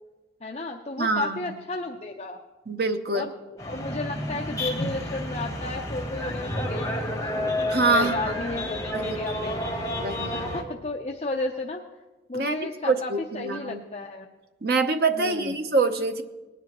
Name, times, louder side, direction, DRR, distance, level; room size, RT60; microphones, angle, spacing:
voice 1, 0.4-2.4 3.1-3.3 3.6-7.5 7.9-9.6 10.3-11.8 12.3-14.3 15.1-15.6, left 2 dB, 35° left, 2 dB, 0.6 m, -33 dB
voice 2, 1.0-1.5 2.7-3.2 7.7-8.2 8.9-9.2 10.0-10.4 12.3-13.8 14.6-16.2, right 3 dB, 55° right, 7 dB, 0.8 m, -25 dB
sound 1, 3.6-10.6, left 1 dB, 15° left, 1.2 m, -30 dB
19.0 x 10.0 x 3.0 m, 1.2 s
head